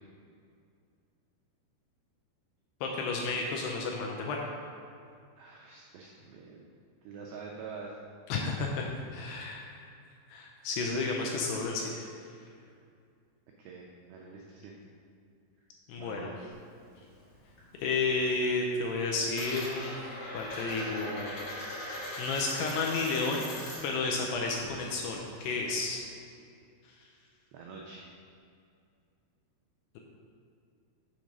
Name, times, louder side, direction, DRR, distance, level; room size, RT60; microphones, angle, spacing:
voice 1, 2.8-4.4 8.3-9.8 10.3-12.1 15.9-16.3 17.8-20.1 20.3-21.4 21.7-23.5 23.8-26.0, left 3 dB, 80° left, -1 dB, 2.5 m, -32 dB
voice 2, 5.4-6.6 7.0-8.0 13.6-14.8 15.9-16.5 27.5-28.1, right 5 dB, 90° right, -1 dB, 2.1 m, -46 dB
Coin (dropping), 16.5-17.7 18.0-18.5 18.7-24.0 24.3-26.0, left 1 dB, 60° left, 3.1 m, -41 dB
7.2 x 4.6 x 5.3 m, 2.4 s
omnidirectional pair, 5.2 m